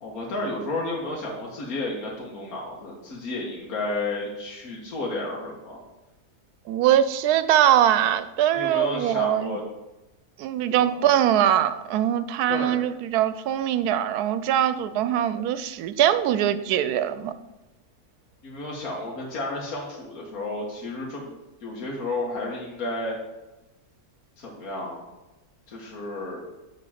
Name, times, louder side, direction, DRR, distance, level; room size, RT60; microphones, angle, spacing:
voice 1, 0.0-5.8 8.5-9.6 10.7-11.0 12.5-12.8 18.4-23.2 24.4-25.0 25.7-26.4, left 2 dB, 70° left, -3 dB, 1.7 m, -32 dB
voice 2, 6.7-9.6 10.4-17.3, right 11 dB, 90° right, 13 dB, 1.1 m, -22 dB
9.2 x 3.7 x 5.6 m, 1.0 s
omnidirectional pair, 1.6 m